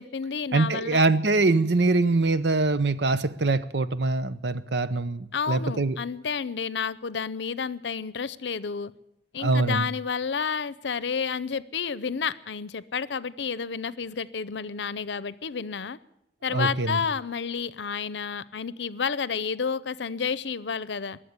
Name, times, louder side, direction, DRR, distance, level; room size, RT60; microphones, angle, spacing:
voice 1, 0.0-1.0 5.3-8.9 9.3-16.0 16.4-21.2, left 6 dB, 85° left, 17 dB, 0.6 m, -30 dB
voice 2, 0.5-6.0 9.4-9.8 16.5-17.0, right 3 dB, 75° right, 13 dB, 0.8 m, -23 dB
21.5 x 7.6 x 8.2 m, 0.81 s
head